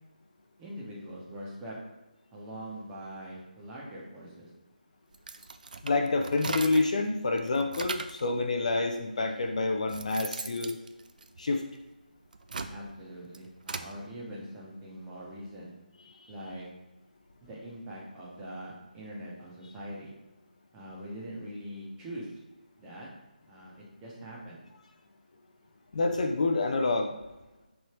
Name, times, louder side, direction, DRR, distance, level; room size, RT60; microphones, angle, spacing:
voice 1, 0.6-1.8 2.3-4.5 12.5-15.7 16.3-16.7 17.4-20.1 20.7-22.4 22.8-23.1 23.5-24.6, equal, 10° right, -5 dB, 0.9 m, -43 dB
sound 1, 5.1-7.0 7.4-8.3 9.1-9.2 9.6-11.8 12.3-13.9, right 4 dB, 60° right, 0.3 m, -39 dB
voice 2, 5.8-10.8 11.4-11.6 16.2-16.3 25.9-27.2, left 3 dB, 50° left, 4 dB, 0.4 m, -28 dB
3.3 x 2.7 x 4.4 m, 1.1 s
figure-of-eight pair, 160°, 5 cm